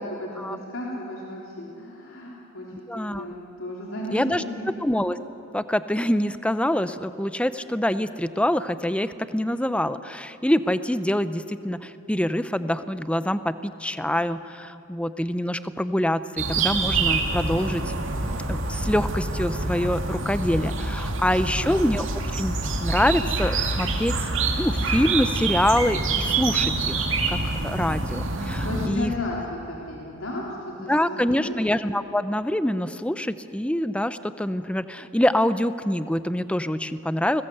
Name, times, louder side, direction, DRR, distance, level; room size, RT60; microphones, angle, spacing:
voice 1, 0.0-4.2 4.6-4.7 21.1-21.7 28.6-31.5, left 1 dB, 80° left, -4 dB, 3.6 m, -34 dB
voice 2, 2.9-3.2 4.1-4.4 4.8-5.2 5.5-17.9 18.5-22.1 22.3-22.5 22.8-24.1 24.5-29.1 30.9-37.4, left 1 dB, 5° left, 12 dB, 0.7 m, -25 dB
sound 1, 16.4-28.9, right 3 dB, 65° right, 2.6 m, -26 dB
30.0 x 20.5 x 8.0 m, 2.9 s
head